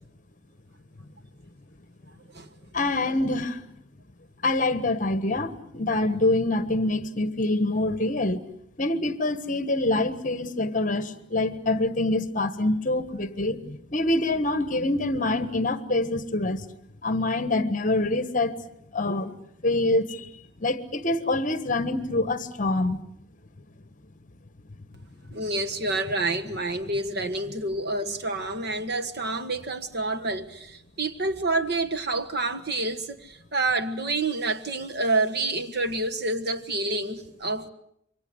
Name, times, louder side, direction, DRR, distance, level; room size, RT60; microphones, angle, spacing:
voice 1, 2.7-3.6 4.4-8.4 8.8-16.6 17.0-18.6 18.9-19.3 19.6-20.3 20.6-23.0, left 2 dB, 40° left, 1.4 m, -25 dB
voice 2, 25.3-37.7, right 2 dB, 55° right, 1.7 m, -28 dB
27.5 x 24.0 x 8.0 m
head